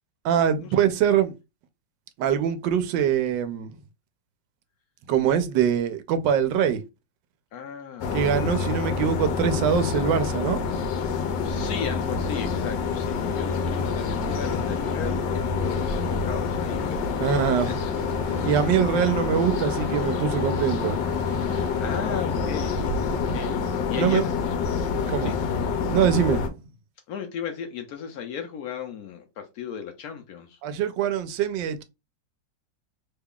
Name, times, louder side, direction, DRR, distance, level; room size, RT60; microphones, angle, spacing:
voice 1, 0.2-1.3 2.2-3.7 5.1-6.8 8.1-10.6 17.2-17.7 18.4-21.0 24.0-24.2 25.1-25.3 25.9-26.5 30.6-31.8, right 8 dB, 85° right, 1.3 m, -23 dB
voice 2, 7.5-8.2 8.6-8.9 11.2-17.7 18.2-18.7 21.4-24.6 25.2-25.4 27.1-30.6, left 7 dB, 70° left, 0.9 m, -36 dB
sound 1, 8.0-26.5, left 5 dB, 90° left, 1.3 m, -27 dB
sound 2, 10.2-24.2, right 2 dB, 40° right, 0.8 m, -45 dB
3.2 x 2.3 x 3.5 m
omnidirectional pair, 1.9 m